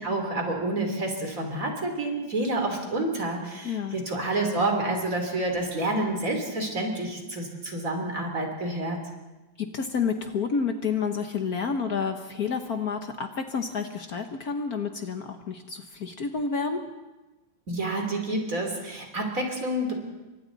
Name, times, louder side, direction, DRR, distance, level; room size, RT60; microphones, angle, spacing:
voice 1, 0.0-9.0 17.7-20.0, right 2 dB, 40° right, 2 dB, 3.8 m, -28 dB
voice 2, 3.6-4.0 9.6-16.8, left 5 dB, 55° left, 6 dB, 1.5 m, -29 dB
29.0 x 24.5 x 4.1 m, 1.1 s
omnidirectional pair, 2.1 m